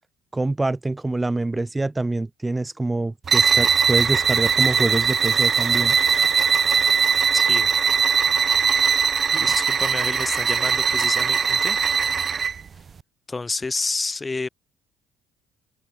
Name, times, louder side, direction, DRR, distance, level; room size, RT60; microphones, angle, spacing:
voice 1, 0.3-6.0 9.3-9.4, right 2 dB, 15° right, 3.5 m, -25 dB
sound 1, 3.2-12.6, right 6 dB, 35° right, 0.3 m, -20 dB
voice 2, 7.3-7.7 9.4-11.8 13.3-14.5, left 3 dB, 20° left, 3.1 m, -29 dB
open air
supercardioid pair, 95°, 0 cm